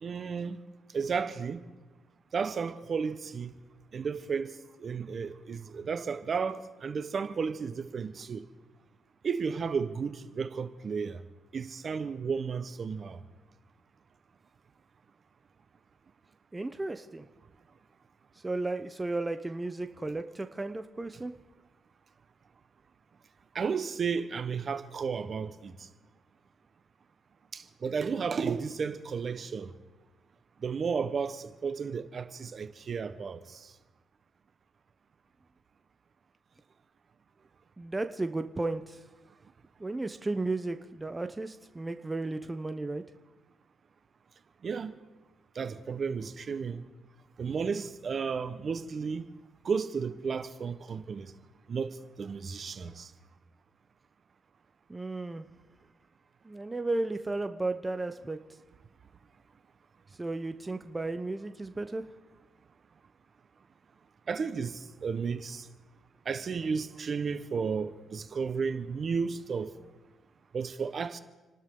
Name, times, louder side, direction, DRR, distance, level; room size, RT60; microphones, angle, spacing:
voice 1, 0.0-0.6 0.9-1.6 2.3-3.5 3.9-4.5 4.8-8.5 9.2-11.2 11.5-13.2 23.5-25.9 27.5-29.7 30.6-33.7 44.6-44.9 45.5-46.8 47.4-49.2 49.6-51.3 51.7-53.1 64.3-65.7 66.2-69.7 70.5-71.2, right 5 dB, 45° right, 1.1 m, -33 dB
voice 2, 16.5-17.2 18.4-21.3 37.8-39.0 39.8-43.0 54.9-55.4 56.4-58.4 60.2-62.0, right 2 dB, 15° right, 0.9 m, -34 dB
29.5 x 12.5 x 3.9 m
cardioid pair, 90°, 0 cm